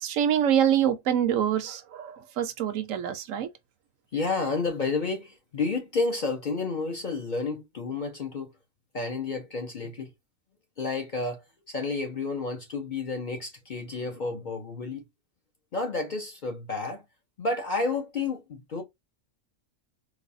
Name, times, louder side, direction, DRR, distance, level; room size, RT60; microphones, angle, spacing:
voice 1, 0.0-3.5, right 9 dB, 80° right, 1.0 m, -25 dB
voice 2, 4.1-8.5 8.9-10.1 10.8-15.0 15.7-17.0 17.4-18.8, left 3 dB, 50° left, 0.6 m, -31 dB
4.0 x 2.3 x 2.6 m
omnidirectional pair, 1.4 m